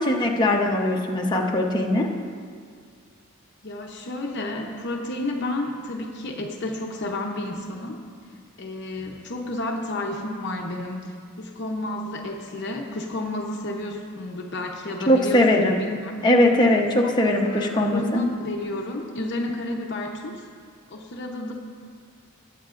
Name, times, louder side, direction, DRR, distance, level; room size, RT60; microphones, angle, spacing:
voice 1, 0.0-2.1 15.1-15.7 16.2-18.2, left 1 dB, 20° left, -1 dB, 0.9 m, -20 dB
voice 2, 3.6-8.0 8.6-16.2 17.0-20.4 20.9-21.5, left 2 dB, 50° left, 0 dB, 0.8 m, -31 dB
21.0 x 8.4 x 2.5 m, 2.1 s
head